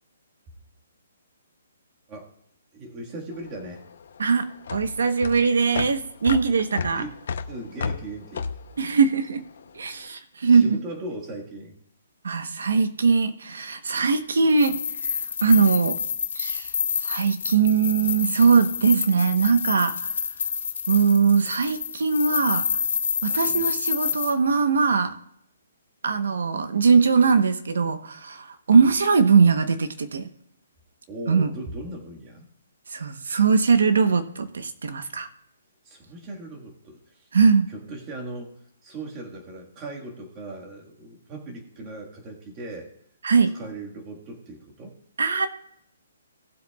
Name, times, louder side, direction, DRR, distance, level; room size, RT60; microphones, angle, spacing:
voice 1, 2.7-3.8 6.9-7.2 7.5-8.5 10.4-11.8 23.5-23.7 28.7-28.9 31.1-32.4 35.8-37.3 37.7-42.9 43.5-45.0, right 2 dB, 15° right, 0 dB, 1.7 m, -38 dB
sound 1, 3.3-9.8, left 5 dB, 55° left, 0.7 m, -33 dB
voice 2, 4.2-7.0 8.8-9.4 9.7-10.8 12.2-16.0 16.3-16.7 17.0-20.2 20.9-22.7 23.2-25.1 26.0-30.3 31.3-31.5 32.9-35.3 37.3-37.7 43.2-43.5 45.2-45.5, right 5 dB, 75° right, 9 dB, 1.0 m, -21 dB
sound 2, 14.5-24.3, left 7 dB, 70° left, 2.1 m, -28 dB
18.5 x 8.1 x 2.4 m, 0.74 s
hypercardioid pair, 175°, 0 cm